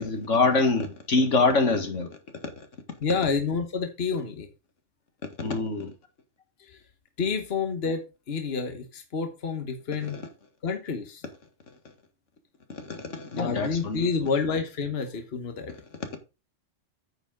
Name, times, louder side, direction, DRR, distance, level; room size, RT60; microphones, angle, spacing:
voice 1, 0.0-2.2 2.6-2.7 5.4-5.9 10.0-10.2 12.7-14.1 16.1-16.2, left 3 dB, 80° left, 2.1 m, -25 dB
voice 2, 3.0-4.5 7.2-10.2 10.6-11.2 13.3-15.7, left 5 dB, 60° left, 1.5 m, -29 dB
9.3 x 7.1 x 3.7 m
omnidirectional pair, 1.2 m